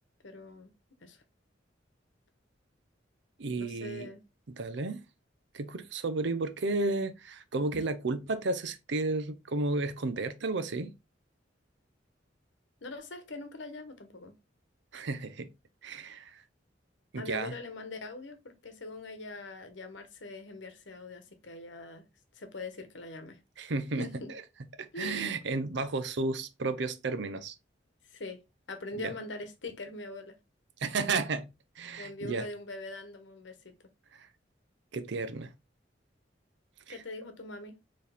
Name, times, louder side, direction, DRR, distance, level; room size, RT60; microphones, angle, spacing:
voice 1, 0.2-0.7 1.0-1.2 3.6-4.2 12.8-14.3 17.2-22.1 22.3-23.4 24.0-24.3 24.9-25.4 28.0-30.4 32.0-33.7 36.9-37.8, left 2 dB, 75° left, 1.0 m, -42 dB
voice 2, 3.4-4.1 4.6-5.0 5.5-10.9 14.9-15.5 15.8-16.4 17.1-17.5 23.6-24.1 24.8-27.5 28.9-29.1 30.8-31.5 31.8-32.5 34.1-34.3 34.9-35.5 36.9-37.0, right 3 dB, 70° right, 0.6 m, -32 dB
4.6 x 3.1 x 3.4 m
head